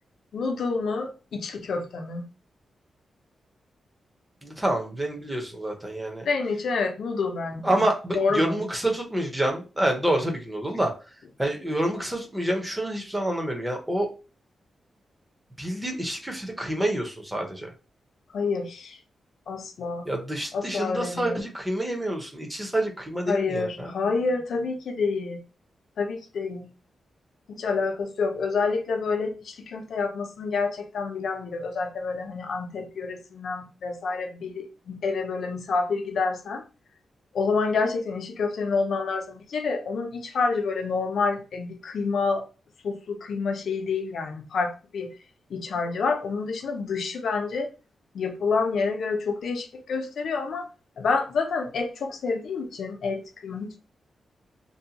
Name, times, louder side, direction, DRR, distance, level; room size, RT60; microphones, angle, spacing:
voice 1, 0.3-2.3 6.3-7.9 8.1-8.6 18.3-19.0 19.5-20.1 20.5-21.4 23.3-25.4 26.0-26.7 27.5-36.6 37.3-42.4 42.8-45.1 45.5-47.7 48.1-50.7 51.0-53.8, left 4 dB, 70° left, 0.5 m, -28 dB
voice 2, 4.4-6.3 7.6-10.9 11.4-14.1 15.6-17.7 20.1-23.9, right 1 dB, 10° right, 0.7 m, -27 dB
2.6 x 2.1 x 2.7 m
wide cardioid pair, 125°, 0 cm